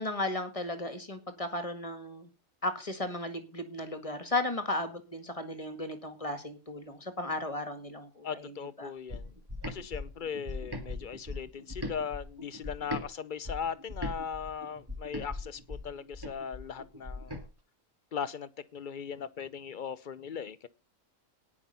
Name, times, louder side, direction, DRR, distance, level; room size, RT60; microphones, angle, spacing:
voice 1, 0.0-2.3 2.6-8.9, left 2 dB, 25° left, 1.9 m, -35 dB
voice 2, 8.2-9.3 9.7-17.5 18.1-20.7, left 7 dB, 45° left, 0.8 m, -38 dB
sound 1, 9.1-13.1 13.4-17.4, left 1 dB, 15° right, 2.1 m, -40 dB
18.0 x 6.2 x 5.6 m
omnidirectional pair, 1.4 m